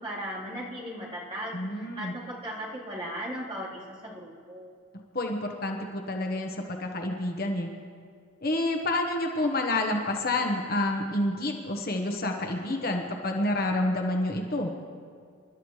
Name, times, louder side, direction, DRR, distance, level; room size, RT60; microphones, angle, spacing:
voice 1, 0.0-4.7, equal, 30° right, -8 dB, 3.9 m, -37 dB
voice 2, 1.5-2.1 5.1-7.7 8.4-14.7, left 1 dB, 45° left, 2 dB, 1.2 m, -28 dB
28.0 x 12.5 x 3.3 m, 2.2 s
head